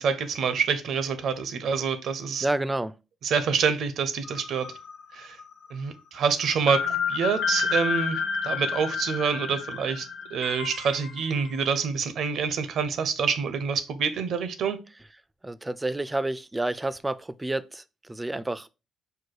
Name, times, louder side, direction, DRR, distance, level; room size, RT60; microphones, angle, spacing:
voice 1, 0.0-2.5 3.2-4.7 5.1-5.4 5.7-14.8, right 6 dB, 70° right, 0.6 m, -27 dB
voice 2, 2.4-2.9 15.4-17.8 18.1-18.7, right 2 dB, 15° right, 0.3 m, -29 dB
sound 1, 4.3-5.1 5.4-5.5 6.7-11.6, left 6 dB, 75° left, 0.7 m, -30 dB
4.6 x 2.3 x 4.5 m
cardioid pair, 90°, 0 cm